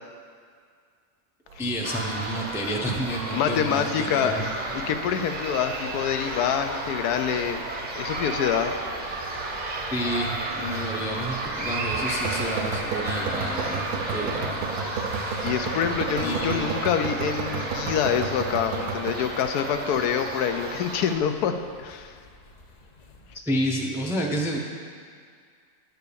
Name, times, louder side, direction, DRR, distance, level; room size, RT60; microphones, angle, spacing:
sound 1, 1.5-19.1, right 4 dB, 75° right, 1.3 m, -35 dB
voice 1, 1.6-4.4 9.9-15.5 16.2-16.6 23.3-24.6, equal, 5° right, -1 dB, 0.4 m, -30 dB
sound 2, 1.8-21.2, right 2 dB, 35° right, 0.7 m, -33 dB
voice 2, 3.3-4.5 4.9-7.6 7.9-8.7 12.1-12.2 15.4-22.1, left 8 dB, 85° left, 7 dB, 1.2 m, -26 dB
sound 3, 4.3-23.4, left 2 dB, 65° left, 0.4 m, -49 dB
10.5 x 4.6 x 6.9 m, 2.1 s
omnidirectional pair, 1.6 m